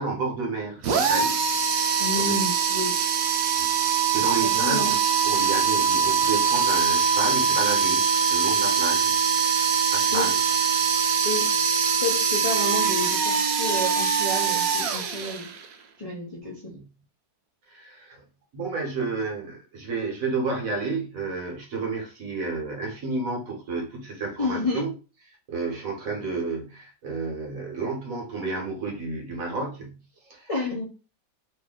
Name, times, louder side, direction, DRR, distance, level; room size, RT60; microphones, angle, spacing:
voice 1, 0.0-1.3 1.7-2.4 3.6-3.7 4.1-4.9 5.2-9.2 9.9-10.4 16.7-16.9 17.7-18.2 18.5-24.9 25.5-30.5, right 3 dB, 55° right, 0 dB, 1.2 m, -31 dB
sound 1, 0.8-15.7, right 6 dB, 75° right, 0.8 m, -23 dB
voice 2, 2.0-3.0 4.6-4.9 10.1-10.3 11.2-11.5 12.0-15.5 16.0-16.7 24.4-24.9 30.5-30.9, left 3 dB, 40° left, -4 dB, 0.5 m, -30 dB
3.1 x 2.7 x 3.6 m, 0.34 s
omnidirectional pair, 2.0 m